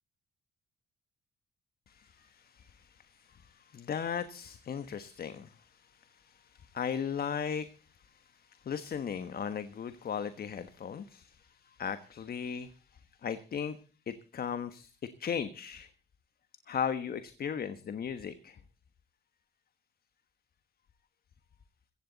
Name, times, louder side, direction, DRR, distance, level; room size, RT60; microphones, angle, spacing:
voice 1, 1.9-12.7 13.2-13.8 14.1-14.9 15.2-15.9 16.7-18.6, left 7 dB, 50° left, 11 dB, 1.3 m, -37 dB
16.0 x 15.5 x 4.0 m, 0.36 s
cardioid pair, 90°, 20 cm